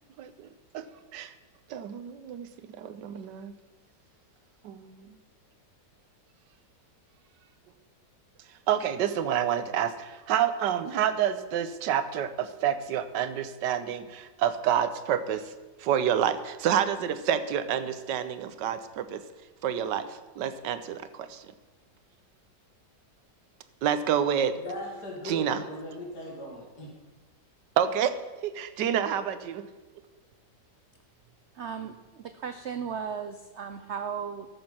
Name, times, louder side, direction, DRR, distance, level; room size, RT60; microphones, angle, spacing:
voice 1, 0.2-0.5 0.7-0.8 1.1-1.3 1.7-3.6 4.6-5.2 8.7-15.5 15.8-19.2 19.6-21.5 23.8-24.5 25.2-25.6 27.8-28.1 28.4-29.7, right 9 dB, 85° right, 12 dB, 1.4 m, -28 dB
voice 2, 24.6-26.9, left 1 dB, 65° left, -1 dB, 2.9 m, -38 dB
voice 3, 31.5-34.5, right 7 dB, 70° right, 9 dB, 0.6 m, -36 dB
13.0 x 7.1 x 5.5 m, 1.3 s
omnidirectional pair, 1.9 m